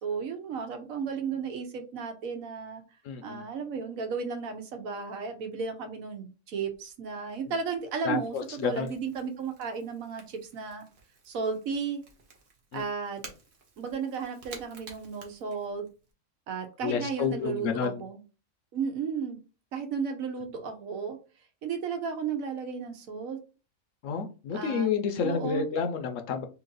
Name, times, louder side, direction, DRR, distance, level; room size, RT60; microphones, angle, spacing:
voice 1, 0.0-2.8 3.2-10.8 11.3-12.0 12.7-13.2 13.8-15.8 16.5-18.2 18.7-19.4 19.7-21.2 21.6-23.4 24.5-24.9 25.2-25.7, right 5 dB, 80° right, 1.2 m, -34 dB
voice 2, 3.0-3.4 8.0-8.9 12.7-12.8 16.8-18.0 24.0-26.5, left 6 dB, 70° left, 0.9 m, -30 dB
Crackle / Crack, 6.7-16.1, right 3 dB, 45° right, 1.0 m, -53 dB
3.0 x 2.8 x 3.8 m
omnidirectional pair, 1.4 m